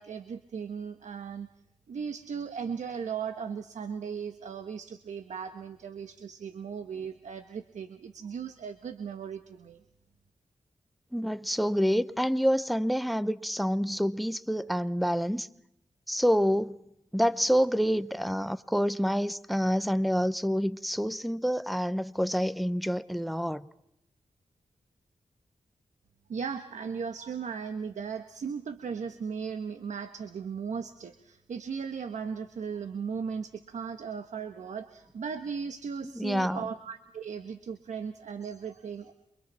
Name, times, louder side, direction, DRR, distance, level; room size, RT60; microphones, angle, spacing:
voice 1, 0.0-1.5 1.9-9.8 26.3-39.1, right 6 dB, 85° right, 1.2 m, -37 dB
voice 2, 11.1-15.5 16.1-16.8 17.1-23.6 36.0-36.6, equal, ahead, 1.0 m, -27 dB
28.5 x 24.5 x 4.4 m
cardioid pair, 75°, 12 cm